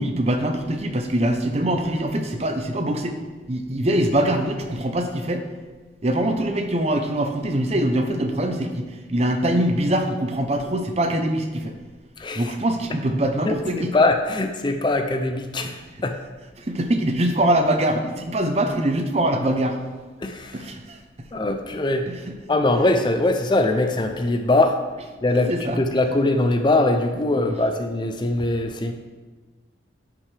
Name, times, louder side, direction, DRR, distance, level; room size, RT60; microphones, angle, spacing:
voice 1, 0.0-3.2 3.5-5.4 6.0-8.8 9.1-11.7 12.4-13.9 15.6-15.7 16.6-19.8 20.5-21.0 22.1-22.3 22.8-22.9 25.5-25.8 27.4-27.5, right 1 dB, 35° right, 5 dB, 0.7 m, -23 dB
voice 2, 13.5-16.1 20.2-20.6 21.3-22.0 22.5-24.8 25.2-28.9, left 2 dB, 25° left, 7 dB, 0.4 m, -22 dB
11.0 x 6.0 x 3.3 m, 1.3 s
head